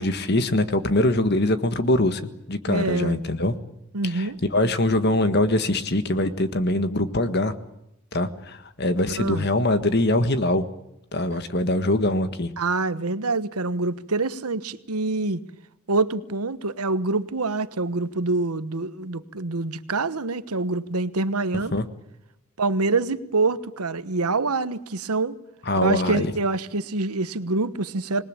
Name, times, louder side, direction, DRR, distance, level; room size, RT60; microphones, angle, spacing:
voice 1, 0.0-3.5 4.0-7.5 8.1-10.7 11.1-12.5 21.5-21.8 25.6-26.3, left 1 dB, 50° left, 1.6 m, -23 dB
voice 2, 2.7-3.2 3.9-4.4 9.2-9.5 12.6-15.4 15.9-21.7 22.6-25.4 25.8-28.2, right 3 dB, 90° right, 1.2 m, -26 dB
26.5 x 20.5 x 8.9 m
head